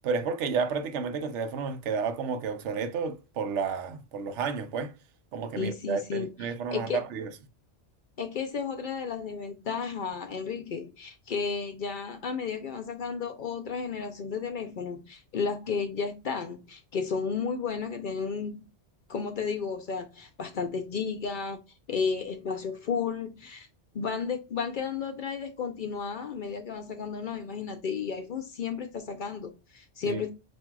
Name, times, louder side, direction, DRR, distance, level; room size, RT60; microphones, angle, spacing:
voice 1, 0.0-4.9 5.3-7.3 30.0-30.2, right 5 dB, 90° right, 0.9 m, -31 dB
voice 2, 5.6-7.0 8.2-18.7 19.1-21.6 21.9-23.7 23.9-30.3, left 5 dB, 55° left, 0.6 m, -33 dB
5.8 x 2.6 x 2.2 m
omnidirectional pair, 1.2 m